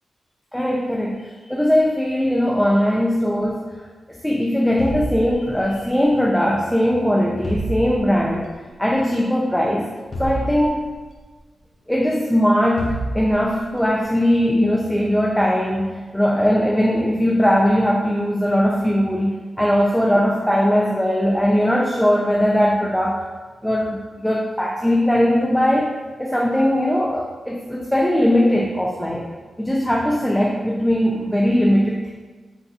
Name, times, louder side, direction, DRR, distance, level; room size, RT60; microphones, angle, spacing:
voice 1, 0.5-3.6 4.1-8.5 8.8-9.9 10.2-10.9 11.9-23.2 23.6-29.3 29.6-32.1, equal, 5° left, -2 dB, 0.4 m, -19 dB
sound 1, 4.8-5.9 7.4-8.4 10.1-11.2 12.8-13.7, right 1 dB, 50° left, 0.7 m, -29 dB
4.7 x 3.4 x 2.8 m, 1.4 s
cardioid pair, 85°, 0 cm